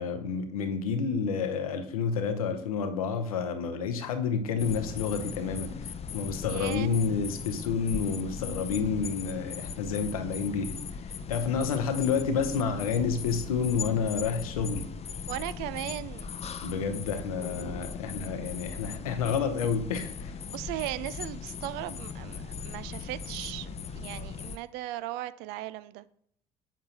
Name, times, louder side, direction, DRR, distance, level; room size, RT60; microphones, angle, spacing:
voice 1, 0.0-10.8 11.0-14.9 16.6-20.4, left 5 dB, 85° left, 0.8 m, -30 dB
sound 1, 4.6-24.6, left 6 dB, 35° left, 0.6 m, -38 dB
voice 2, 6.5-7.1 15.3-16.3 20.5-26.1, right 15 dB, 65° right, 0.4 m, -37 dB
7.5 x 7.3 x 2.9 m
hypercardioid pair, 55°, 18 cm